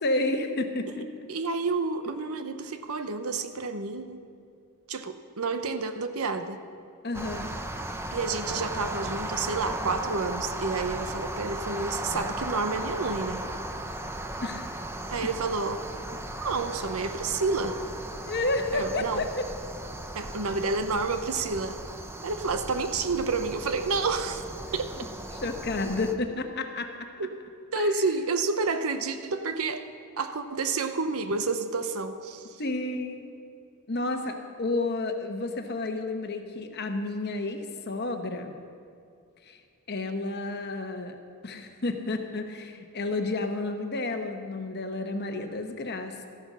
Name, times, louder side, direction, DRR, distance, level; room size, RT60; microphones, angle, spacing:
voice 1, 0.0-1.1 7.0-7.5 14.4-14.7 18.2-19.3 25.3-26.9 27.8-27.9 32.6-33.3 33.9-38.5 39.5-39.6 39.9-41.2 41.4-46.3, left 2 dB, 50° left, 6 dB, 1.0 m, -31 dB
voice 2, 1.3-4.2 4.9-6.6 8.1-13.5 15.1-15.8 16.4-17.8 18.7-19.3 20.1-21.8 22.2-24.4 24.7-24.9 27.2-27.3 27.7-29.8 30.2-32.6, right 4 dB, 75° right, 9 dB, 0.8 m, -29 dB
sound 1, 7.1-26.1, right 1 dB, 10° right, 0.6 m, -36 dB
13.5 x 9.7 x 6.1 m, 2.4 s
head